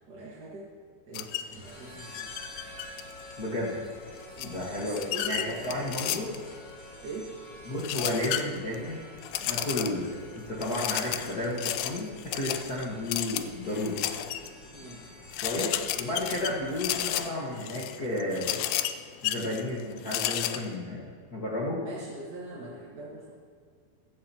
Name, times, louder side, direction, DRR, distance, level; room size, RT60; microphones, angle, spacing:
voice 1, 0.1-0.7 1.1-2.3 4.4-6.4 7.0-7.3 14.7-15.0 16.4-16.6 21.8-23.3, right 2 dB, 40° right, -6 dB, 1.5 m, -42 dB
sound 1, 1.1-1.5 2.1-3.3 4.4-6.5 7.8-8.8 9.2-10.1 10.6-14.5 14.9-15.0 15.3-20.7, left 12 dB, 80° left, 2.3 m, -33 dB
sound 2, 1.5-17.3, left 1 dB, 40° left, 4.2 m, -48 dB
voice 2, 3.4-3.8 4.4-5.0 5.2-6.3 7.7-9.0 9.4-14.0 15.4-18.7 19.2-21.0 21.3-21.8, left 1 dB, 60° left, -6 dB, 0.9 m, -32 dB
15.5 x 15.0 x 3.0 m, 2.1 s
omnidirectional pair, 4.5 m